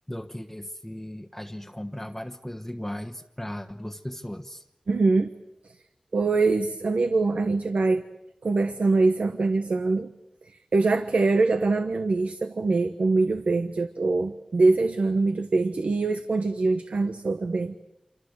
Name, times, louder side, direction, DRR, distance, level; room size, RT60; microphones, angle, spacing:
voice 1, 0.1-4.6, left 1 dB, 10° left, 4 dB, 1.2 m, -37 dB
voice 2, 4.9-5.3 6.1-8.1 8.4-10.1 10.5-17.7, right 3 dB, 85° right, 8 dB, 1.2 m, -23 dB
27.0 x 25.0 x 8.2 m, 0.85 s
wide cardioid pair, 55°, 2 cm